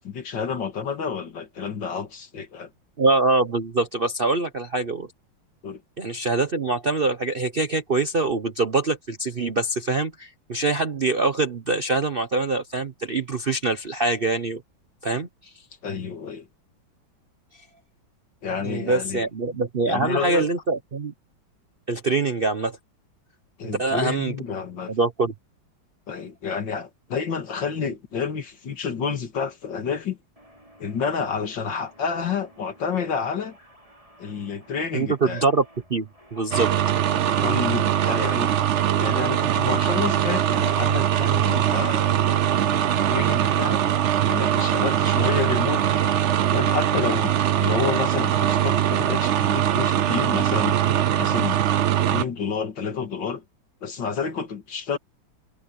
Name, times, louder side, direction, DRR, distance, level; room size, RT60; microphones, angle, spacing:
voice 1, 0.0-2.7 5.6-5.8 15.8-16.5 18.4-19.2 19.9-20.5 23.6-24.9 26.1-30.2 30.8-33.6 34.2-35.5 37.4-38.5 39.0-42.4 42.7-43.8 44.3-46.1 46.5-50.8 51.2-51.6 52.1-53.4 53.8-55.0, left 6 dB, 65° left, 2.7 m, -29 dB
voice 2, 3.0-5.1 6.0-14.6 15.0-15.5 18.6-21.1 21.9-22.8 23.6-24.3 24.9-25.3 34.9-35.6 35.9-36.7, right 3 dB, 40° right, 0.8 m, -24 dB
sound 1, 30.4-40.7, right 1 dB, 15° right, 5.6 m, -54 dB
sound 2, 36.5-52.2, right 10 dB, 85° right, 0.6 m, -22 dB
omnidirectional pair, 2.1 m